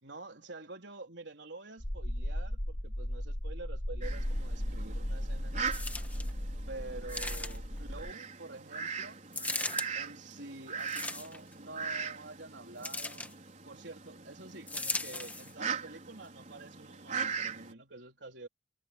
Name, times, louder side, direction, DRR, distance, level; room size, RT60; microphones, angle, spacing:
voice 1, 0.0-5.8 6.7-9.2 9.9-13.3 13.7-18.5, right 2 dB, 75° right, 4.1 m, -48 dB
sound 1, 1.8-8.1, equal, 70° left, 3.7 m, -36 dB
Fowl, 4.0-17.7, right 6 dB, 45° right, 4.7 m, -41 dB
sound 2, 5.7-6.3 7.1-7.8 9.3-9.9 10.8-11.5 12.8-13.3 14.7-15.5 16.2-16.3, left 2 dB, 10° left, 1.6 m, -37 dB
head